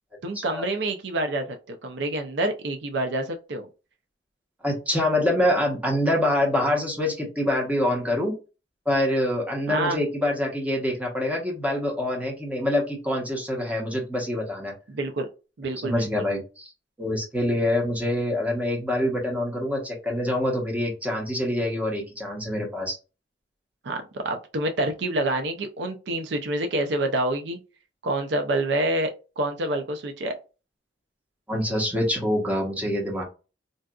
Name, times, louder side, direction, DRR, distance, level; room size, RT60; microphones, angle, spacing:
voice 1, 0.2-3.7 9.7-10.0 14.9-15.3 15.6-16.3 23.8-27.6 28.0-30.3, right 1 dB, 70° right, 5 dB, 0.5 m, -27 dB
voice 2, 4.6-8.3 8.9-14.7 15.8-16.7 17.0-23.0 31.5-33.2, left 1 dB, 10° right, -1 dB, 0.9 m, -25 dB
3.9 x 2.4 x 2.3 m, 0.31 s
head